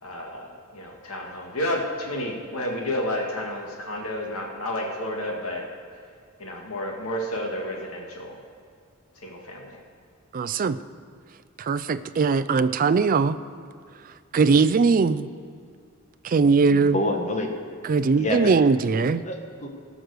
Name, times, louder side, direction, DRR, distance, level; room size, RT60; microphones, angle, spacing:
voice 1, 0.0-5.6 6.4-8.4 9.2-9.8, left 1 dB, 75° left, 0 dB, 2.1 m, -31 dB
voice 2, 10.3-10.8 11.6-13.4 14.3-15.3 16.2-17.0 17.8-19.2, right 4 dB, 40° right, 13 dB, 0.3 m, -20 dB
voice 3, 16.7-17.5 18.2-18.5 18.9-19.7, left 1 dB, 30° left, 3 dB, 1.4 m, -28 dB
17.5 x 6.2 x 6.5 m, 2.2 s
head